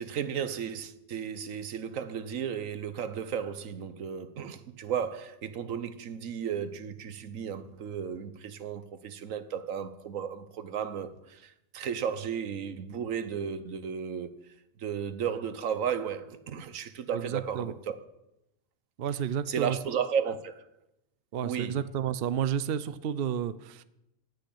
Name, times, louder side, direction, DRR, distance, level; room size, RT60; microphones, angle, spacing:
voice 1, 0.0-14.3 14.8-18.0 19.5-20.6 21.4-21.9, right 7 dB, 85° right, 1.3 m, -34 dB
voice 2, 17.1-17.7 19.0-19.8 21.3-23.8, right 9 dB, 55° right, 0.8 m, -31 dB
18.0 x 6.4 x 8.5 m
omnidirectional pair, 1.3 m